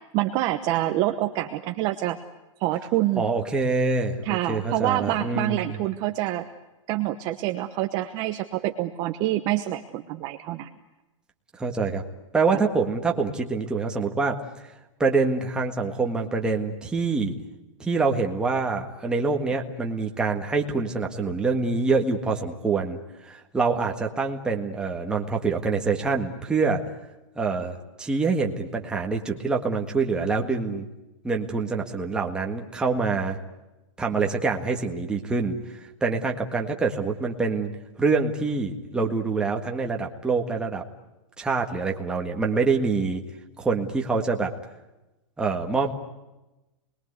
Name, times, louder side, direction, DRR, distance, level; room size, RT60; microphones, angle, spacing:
voice 1, 0.1-2.2 2.6-3.2 4.2-6.5 6.9-10.7, right 15 dB, 25° right, 6 dB, 1.0 m, -26 dB
voice 2, 3.2-5.7 11.6-12.0 12.3-14.4 15.0-17.4 17.8-23.0 23.3-26.8 27.4-30.8 31.2-33.4 34.0-35.6 36.0-37.7 38.0-40.8 41.4-43.2 43.6-44.5 45.4-46.0, right 4 dB, 5° right, 1 dB, 1.7 m, -25 dB
28.5 x 21.5 x 8.2 m, 1.0 s
supercardioid pair, 175°, 16 cm